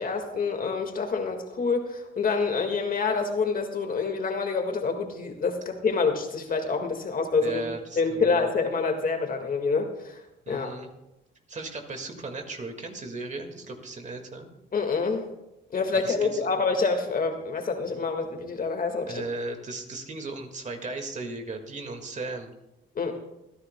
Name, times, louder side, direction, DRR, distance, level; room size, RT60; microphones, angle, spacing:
voice 1, 0.0-10.8 14.7-15.3 15.7-19.2 23.0-23.1, left 4 dB, 45° left, 5 dB, 1.8 m, -27 dB
voice 2, 7.4-8.4 10.5-10.9 11.5-14.5 15.9-16.5 19.0-22.5, right 3 dB, 35° right, 5 dB, 1.9 m, -36 dB
26.0 x 10.5 x 2.2 m, 0.91 s
cardioid pair, 90°, 20 cm